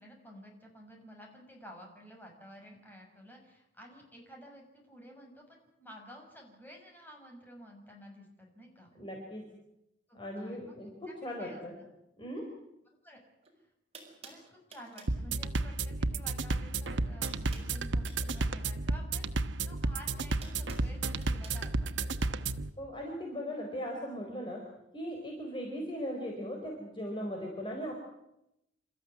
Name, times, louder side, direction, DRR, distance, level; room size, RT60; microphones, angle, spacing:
voice 1, 0.0-8.9 10.1-10.7 11.4-11.9 13.0-13.2 13.6-13.7 14.2-22.6, equal, 10° left, 1 dB, 6.9 m, -52 dB
voice 2, 8.9-9.5 10.1-11.7 12.2-12.4 22.8-24.6 24.9-28.0, equal, 25° left, 0 dB, 4.6 m, -38 dB
sound 1, 13.4-13.5 13.9-15.2 16.4-16.7 16.9-18.5 19.7-21.6, right 4 dB, 35° right, 5.5 m, -52 dB
sound 2, 15.1-22.7, right 3 dB, 75° right, 1.1 m, -32 dB
28.5 x 14.5 x 9.7 m, 0.85 s
head